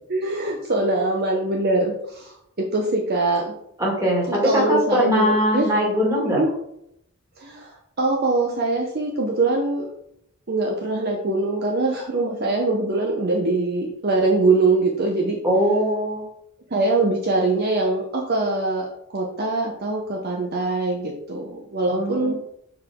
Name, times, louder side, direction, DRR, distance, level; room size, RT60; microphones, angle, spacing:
voice 1, 0.1-3.5 4.3-5.7 6.2-6.5 7.4-9.9 10.5-15.4 16.7-22.3, right 2 dB, 45° right, 0 dB, 0.8 m, -23 dB
voice 2, 3.8-6.4 15.4-16.2 21.9-22.3, equal, 15° right, -3 dB, 2.0 m, -21 dB
7.3 x 4.7 x 3.6 m, 0.76 s
head